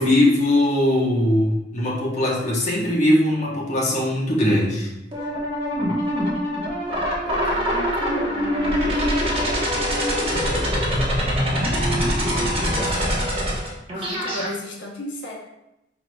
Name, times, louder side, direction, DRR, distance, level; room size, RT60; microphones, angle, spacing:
voice 1, 0.0-4.9, left 1 dB, 40° left, -4 dB, 1.0 m, -20 dB
sound 1, 5.1-14.5, equal, 35° right, 1.1 m, -23 dB
voice 2, 7.2-8.9 10.3-10.8 12.7-13.6 13.9-15.3, left 1 dB, 90° left, -2 dB, 1.0 m, -36 dB
4.7 x 4.6 x 2.3 m, 0.87 s
head